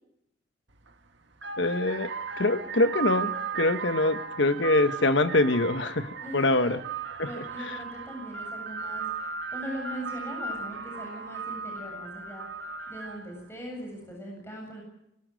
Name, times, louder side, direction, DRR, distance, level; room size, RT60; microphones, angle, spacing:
sound 1, 0.7-0.9 1.3-13.4, right 6 dB, 70° right, 1.8 m, -36 dB
voice 1, 1.6-6.8, left 2 dB, 70° left, 10 dB, 1.2 m, -24 dB
voice 2, 6.2-6.5 7.2-12.5 12.9-14.8, equal, 15° left, 0 dB, 7.8 m, -40 dB
25.5 x 19.5 x 6.4 m, 0.81 s
head